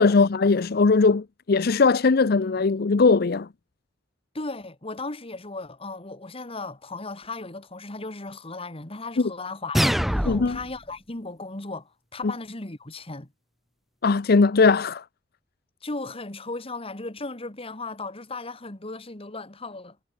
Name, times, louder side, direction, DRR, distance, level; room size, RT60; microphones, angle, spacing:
voice 1, 0.0-3.5 10.3-10.6 14.0-15.0, left 4 dB, 55° left, 0.6 m, -19 dB
voice 2, 4.3-13.3 15.8-20.0, left 3 dB, 30° left, 2.0 m, -36 dB
sound 1, 9.7-10.7, equal, ahead, 0.3 m, -24 dB
head